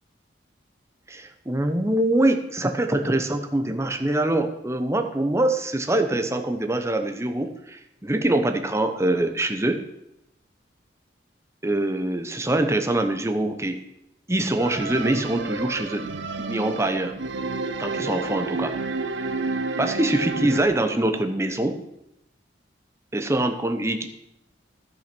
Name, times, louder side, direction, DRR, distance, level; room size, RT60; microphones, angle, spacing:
voice 1, 1.1-9.8 11.6-13.8 14.3-16.0 16.5-17.1 17.8-18.8 19.8-21.8 23.1-24.1, right 1 dB, 15° right, 7 dB, 0.8 m, -24 dB
sound 1, 14.6-20.6, right 3 dB, 75° right, 0.8 m, -30 dB
13.5 x 5.9 x 6.0 m, 0.85 s
head